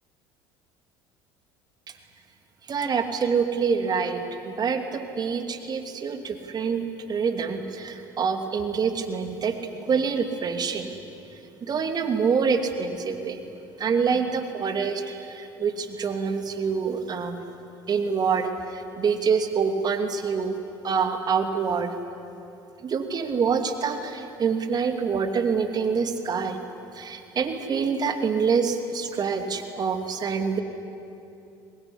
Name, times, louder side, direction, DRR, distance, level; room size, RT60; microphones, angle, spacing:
voice 1, 2.7-9.6 9.9-10.9 11.6-13.4 13.8-17.4 17.9-20.6 20.8-22.0 22.8-26.6 27.0-30.6, right 5 dB, 40° right, 6 dB, 2.8 m, -26 dB
24.0 x 20.0 x 10.0 m, 2.7 s
hypercardioid pair, 70°, 11 cm